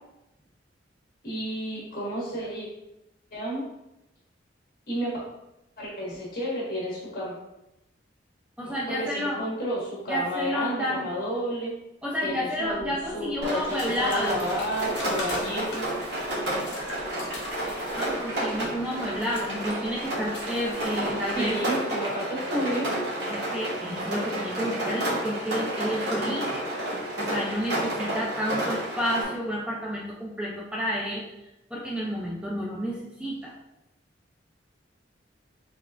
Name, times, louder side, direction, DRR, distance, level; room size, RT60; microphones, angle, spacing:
voice 1, 1.2-2.7 3.3-3.7 4.9-5.2 5.8-7.3 8.6-11.7 12.2-15.8 21.3-23.0, equal, 50° left, -5 dB, 1.5 m, -31 dB
voice 2, 8.6-9.4 10.1-11.1 12.0-14.5 17.9-21.6 23.3-26.6 27.2-31.2 31.7-33.5, equal, 5° right, -4 dB, 0.4 m, -30 dB
sound 1, 12.6-21.5, left 1 dB, 65° left, 0.9 m, -41 dB
Rain, 13.4-29.2, right 1 dB, 65° right, 1.4 m, -31 dB
4.3 x 3.3 x 2.4 m, 0.90 s
head